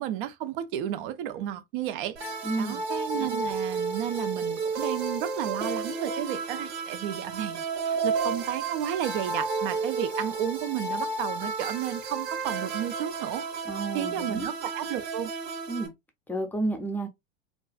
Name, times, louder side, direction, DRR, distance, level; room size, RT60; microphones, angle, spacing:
voice 1, 0.0-2.2 2.6-13.4 13.9-15.3, right 11 dB, 50° right, 0.5 m, -32 dB
sound 1, 2.2-15.9, right 4 dB, 75° right, 1.1 m, -32 dB
voice 2, 2.4-2.8 13.6-14.5 15.7-15.9 16.3-17.1, right 2 dB, 5° left, 0.6 m, -31 dB
2.4 x 2.3 x 2.3 m
hypercardioid pair, 90°, 34 cm